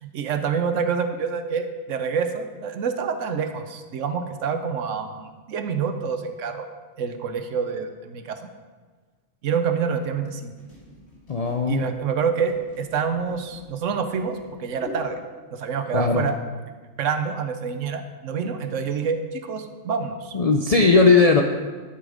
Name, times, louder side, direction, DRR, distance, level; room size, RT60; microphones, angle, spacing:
voice 1, 0.0-6.7 7.0-8.4 9.4-10.5 11.7-15.2 15.5-16.4 17.0-20.4, right 6 dB, 80° right, 8 dB, 1.1 m, -27 dB
sound 1, 10.2-15.2, left 2 dB, 80° left, 2.7 m, -45 dB
voice 2, 11.3-11.8 15.9-16.3 20.3-21.4, left 4 dB, 55° left, 3 dB, 0.4 m, -17 dB
11.5 x 5.6 x 5.0 m, 1.4 s
omnidirectional pair, 1.3 m